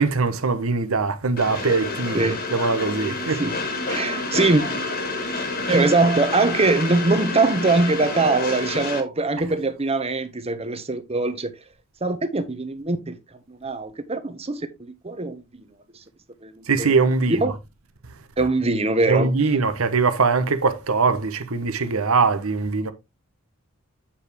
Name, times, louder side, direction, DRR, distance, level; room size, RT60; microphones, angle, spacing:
voice 1, 0.0-3.4 16.7-17.4 19.1-22.9, right 4 dB, 70° right, 1.0 m, -22 dB
Train, 1.4-9.0, left 3 dB, 45° left, 1.8 m, -29 dB
voice 2, 3.9-4.6 5.7-11.5 12.0-13.2 13.5-15.4 16.4-16.9 17.3-17.5 18.4-19.3, right 3 dB, 30° right, 1.0 m, -22 dB
8.7 x 4.8 x 3.4 m
head